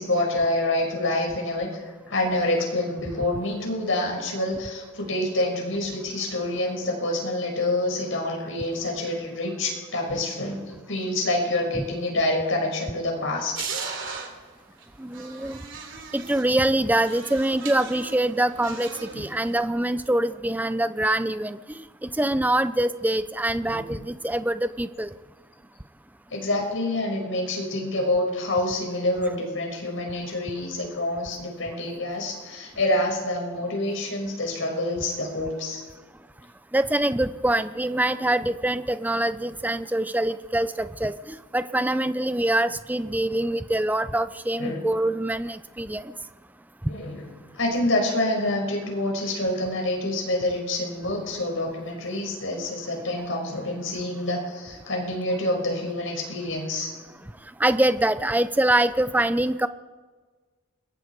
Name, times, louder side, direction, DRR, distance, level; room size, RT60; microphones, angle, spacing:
voice 1, 0.0-1.8 2.1-13.7 23.7-23.8 26.3-35.8 44.6-44.8 46.9-47.3 47.5-56.9, left 1 dB, 65° left, 1 dB, 5.6 m, -27 dB
sound 1, 13.6-14.3 14.8-14.9 15.1-16.5 17.0-19.6, right 5 dB, 60° right, 3.3 m, -37 dB
voice 2, 15.0-15.6 16.1-25.1 36.7-46.1 57.6-59.7, right 1 dB, 10° right, 12 dB, 0.5 m, -24 dB
28.0 x 22.5 x 4.7 m, 1.4 s
head